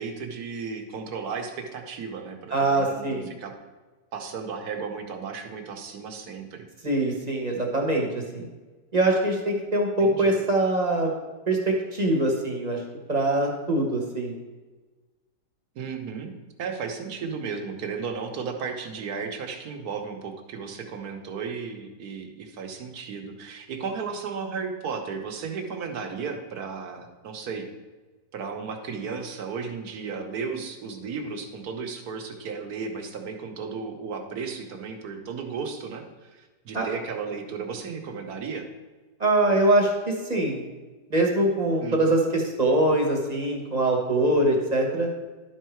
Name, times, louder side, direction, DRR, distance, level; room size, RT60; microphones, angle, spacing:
voice 1, 0.0-3.5 4.1-6.6 7.1-7.2 10.0-10.4 15.7-16.3 16.6-27.7 28.3-38.7 41.8-42.2, right 5 dB, 65° right, 4 dB, 1.4 m, -34 dB
voice 2, 2.5-3.3 6.8-8.1 8.3-8.5 8.9-11.1 11.5-12.8 13.1-14.3 36.7-36.8 39.2-40.6 41.1-45.1, right 1 dB, 25° right, 0 dB, 1.1 m, -23 dB
11.0 x 4.6 x 4.5 m, 1.3 s
omnidirectional pair, 1.9 m